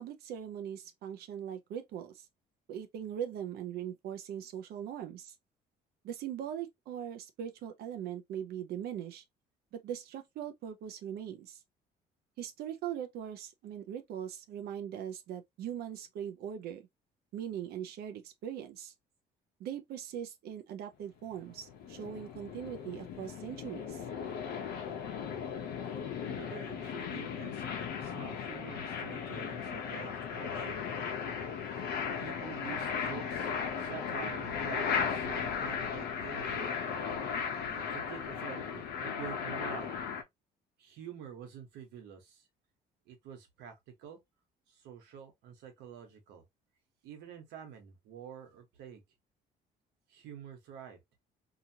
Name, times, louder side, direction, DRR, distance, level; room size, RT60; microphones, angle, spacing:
voice 1, 0.0-2.3 2.7-5.3 6.0-9.2 9.7-11.6 12.4-16.8 17.3-18.9 19.6-24.0, right 9 dB, 70° right, 0.6 m, -40 dB
sound 1, 21.3-40.2, left 7 dB, 70° left, 0.7 m, -36 dB
voice 2, 26.2-30.8 32.2-33.5 33.8-36.7 37.6-39.9 40.8-42.5 43.1-44.2 44.7-46.4 47.0-49.0 50.1-51.0, right 8 dB, 90° right, 1.2 m, -47 dB
2.8 x 2.4 x 2.8 m
cardioid pair, 110°, 17 cm